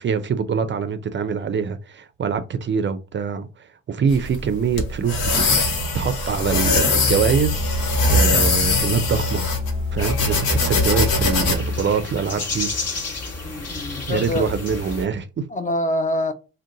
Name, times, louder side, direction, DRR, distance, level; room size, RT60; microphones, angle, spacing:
voice 1, 0.0-5.5 5.9-9.5 9.9-12.7 14.1-15.5, right 6 dB, 35° right, 0.4 m, -24 dB
sound 1, 4.1-11.6, left 2 dB, 85° left, 0.9 m, -21 dB
Musical instrument, 6.8-11.9, left 4 dB, 10° right, 0.9 m, -28 dB
sound 2, 10.0-15.1, left 3 dB, 50° left, 1.1 m, -31 dB
voice 2, 13.4-14.5 15.5-16.3, left 1 dB, 25° left, 0.5 m, -25 dB
2.6 x 2.2 x 3.7 m
supercardioid pair, 60°, 32 cm